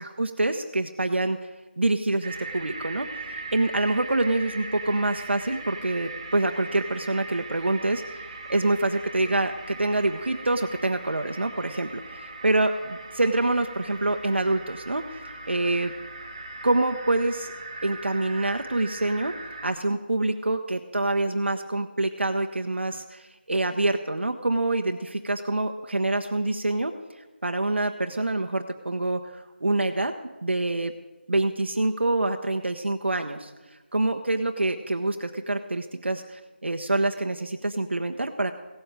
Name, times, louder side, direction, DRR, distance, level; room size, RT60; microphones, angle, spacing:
voice 1, 0.0-1.5 1.8-8.2 8.5-15.1 15.5-15.9 16.6-17.5 17.8-19.3 19.6-26.9 27.4-30.1 30.4-30.9 31.3-33.5 33.9-38.5, right 2 dB, 85° right, 6 dB, 1.1 m, -26 dB
sound 1, 2.2-19.7, right 3 dB, 25° right, 1.8 m, -40 dB
16.5 x 8.1 x 8.9 m, 1.2 s
figure-of-eight pair, 170°, 6 cm